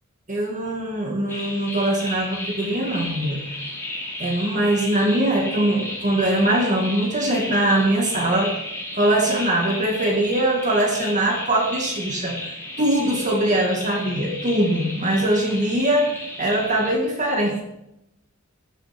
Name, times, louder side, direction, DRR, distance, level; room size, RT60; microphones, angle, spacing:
voice 1, 0.3-3.4 4.2-8.5 9.0-12.4 12.8-16.1 16.4-17.6, right 1 dB, 35° right, 0 dB, 2.1 m, -22 dB
sound 1, 1.3-16.9, left 1 dB, 10° left, 4.6 m, -34 dB
15.0 x 7.8 x 5.8 m, 0.84 s
head